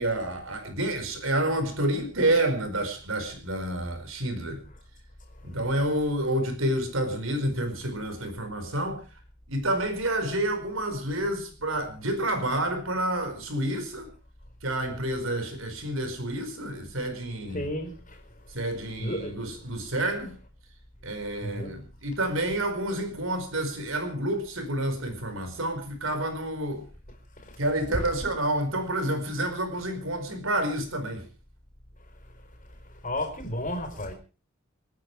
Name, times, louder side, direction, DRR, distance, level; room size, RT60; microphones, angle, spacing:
voice 1, 0.0-4.6 5.4-9.0 9.5-14.1 14.6-17.7 18.5-20.3 21.0-26.9 27.6-31.2, right 1 dB, 80° right, 4.8 m, -29 dB
voice 2, 17.5-18.2 19.0-19.7 21.4-21.7 27.4-27.6 27.9-28.1 33.0-34.1, left 1 dB, 40° left, 4.2 m, -33 dB
28.0 x 9.7 x 4.8 m
head